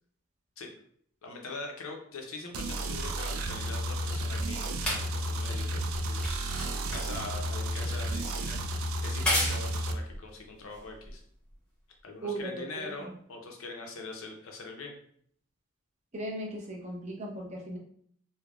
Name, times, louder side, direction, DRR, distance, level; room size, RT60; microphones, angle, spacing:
voice 1, 1.2-6.6 6.9-11.2 12.0-15.0, left 3 dB, 75° left, 2 dB, 0.6 m, -43 dB
sound 1, 2.5-9.9, right 1 dB, 75° right, 0.3 m, -32 dB
sound 2, 3.9-11.5 12.4-12.5, left 1 dB, 5° left, 0.8 m, -36 dB
voice 2, 12.2-13.0 16.1-17.8, right 1 dB, 30° right, -1 dB, 0.6 m, -37 dB
3.3 x 2.1 x 2.4 m, 0.62 s
head